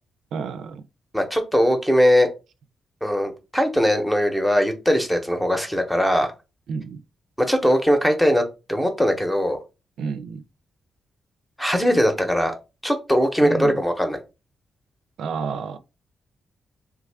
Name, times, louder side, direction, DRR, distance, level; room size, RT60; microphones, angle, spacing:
voice 1, 0.3-0.8 6.7-7.0 10.0-10.4 13.4-13.8 15.2-15.8, right 5 dB, 85° right, 0.4 m, -30 dB
voice 2, 1.1-2.3 3.0-6.3 7.4-8.4 8.7-9.6 11.6-12.5 12.8-14.2, equal, 5° left, 0.8 m, -20 dB
3.2 x 2.3 x 3.4 m
cardioid pair, 115°, 0 cm